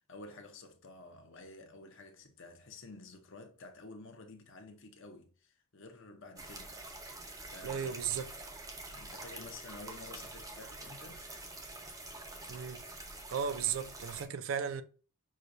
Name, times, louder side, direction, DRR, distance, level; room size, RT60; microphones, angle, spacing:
voice 1, 0.0-7.1 7.4-8.2 8.9-11.2, left 2 dB, 60° left, 0.7 m, -51 dB
sound 1, 6.4-14.2, right 2 dB, 15° right, 0.6 m, -46 dB
voice 2, 7.6-8.3 12.5-12.8 13.3-14.8, right 7 dB, 60° right, 0.4 m, -35 dB
6.1 x 2.2 x 2.6 m
head